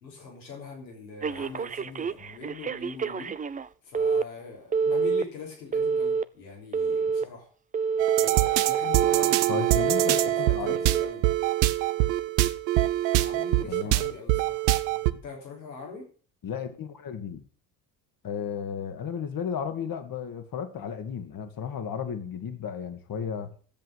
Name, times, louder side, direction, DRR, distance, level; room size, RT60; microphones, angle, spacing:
voice 1, 0.0-3.4 3.8-7.5 8.2-11.2 13.1-16.0, left 4 dB, 90° left, -1 dB, 3.5 m, -42 dB
Telephone, 1.2-3.7 3.9-4.2 4.7-5.2 5.7-6.2 6.7-7.2 7.7-8.2 8.7-9.3 9.7-10.3 10.8-11.1, right 5 dB, 15° right, 0.5 m, -28 dB
sound 1, 8.0-15.1, right 16 dB, 75° right, 0.9 m, -24 dB
voice 2, 9.5-10.8 13.7-14.0 16.4-17.5 18.2-23.5, left 7 dB, 45° left, 8 dB, 1.8 m, -34 dB
10.5 x 7.8 x 8.0 m, 0.43 s
hypercardioid pair, 55°, 49 cm